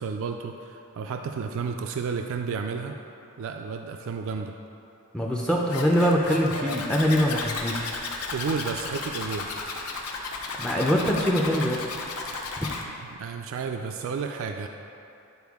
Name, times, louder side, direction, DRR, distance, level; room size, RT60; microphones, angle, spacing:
voice 1, 0.0-3.0 3.4-4.5 8.3-9.5 13.2-14.7, right 5 dB, 65° right, 4 dB, 0.3 m, -31 dB
voice 2, 5.1-8.0 10.5-11.9 12.6-12.7, equal, 5° left, -2 dB, 0.4 m, -23 dB
Zipper (clothing), 5.7-12.8, left 3 dB, 85° left, 0.7 m, -34 dB
Piano, 6.5-8.4, right 1 dB, 85° right, 0.9 m, -42 dB
9.4 x 4.3 x 3.5 m, 2.7 s
head